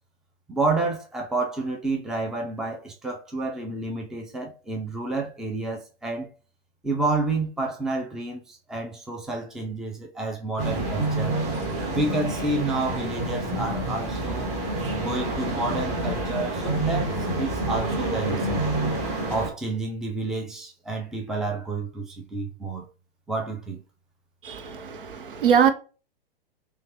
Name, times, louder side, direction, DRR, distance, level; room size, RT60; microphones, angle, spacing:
voice 1, 0.5-6.3 6.8-11.4 11.9-14.5 15.0-18.7 19.3-22.9 23.3-23.8, right 3 dB, ahead, 0.5 m, -29 dB
sound 1, 10.6-19.5, right 1 dB, 20° right, 1.7 m, -28 dB
voice 2, 24.4-25.7, right 8 dB, 65° right, 0.9 m, -22 dB
5.6 x 2.4 x 3.0 m
figure-of-eight pair, 110°, 29 cm